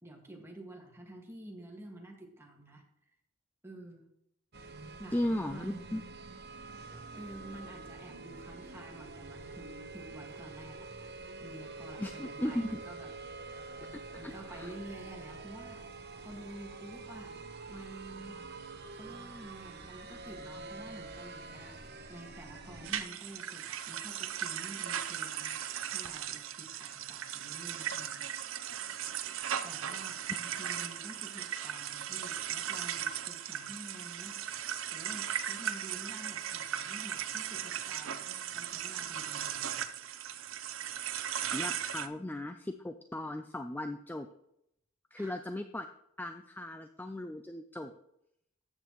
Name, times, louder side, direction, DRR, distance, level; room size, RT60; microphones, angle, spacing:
voice 1, 0.0-2.8 3.6-4.1 5.0-5.8 7.1-10.9 11.4-13.4 14.2-15.9 16.2-18.5 18.9-21.8 22.1-28.6 29.6-34.4 34.9-39.9 45.2-45.4, right 1 dB, 10° right, 0 dB, 1.9 m, -49 dB
sound 1, 4.5-23.0, right 3 dB, 50° right, 0.9 m, -46 dB
voice 2, 5.1-6.0 6.9-7.0 12.0-12.8 14.2-14.7 41.5-44.3 45.1-45.9 46.2-47.9, left 1 dB, 10° left, 7 dB, 0.4 m, -37 dB
sound 2, 22.8-42.1, right 9 dB, 75° right, 0.7 m, -37 dB
13.5 x 8.1 x 3.1 m, 0.80 s
head